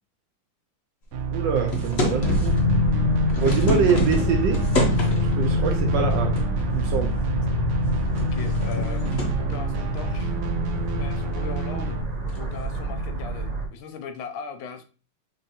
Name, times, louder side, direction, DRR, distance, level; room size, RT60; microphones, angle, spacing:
sound 1, 1.1-12.0, right 5 dB, 90° right, 1.5 m, -32 dB
voice 1, 1.3-2.5 3.4-4.6 5.2-6.3 6.7-7.1, right 5 dB, 70° right, 1.2 m, -24 dB
sound 2, 1.7-2.6 3.1-5.4 6.4-6.9 7.2-7.3 8.0-9.4 12.3-12.5, left 1 dB, 50° left, 0.8 m, -28 dB
sound 3, 2.2-13.7, left 1 dB, 30° right, 1.1 m, -25 dB
voice 2, 8.1-10.3 10.9-12.0 12.3-14.8, left 6 dB, 75° left, 1.3 m, -39 dB
6.4 x 2.6 x 2.8 m
omnidirectional pair, 2.3 m